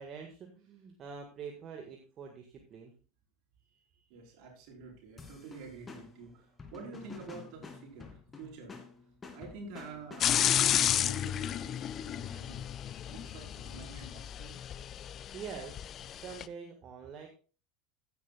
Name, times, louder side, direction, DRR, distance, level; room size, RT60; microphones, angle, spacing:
voice 1, 0.0-2.9 15.3-15.8 16.1-17.3, right 6 dB, 35° right, 3 dB, 1.7 m, -45 dB
voice 2, 3.7-8.7 9.3-12.6 13.1-14.6, right 4 dB, 55° right, 0 dB, 4.6 m, -48 dB
sound 1, 5.2-10.9, left 4 dB, 20° left, 2.1 m, -50 dB
sound 2, 10.2-16.4, left 10 dB, 35° left, 0.5 m, -32 dB
15.5 x 9.6 x 2.4 m, 0.36 s
figure-of-eight pair, 75°, 0 cm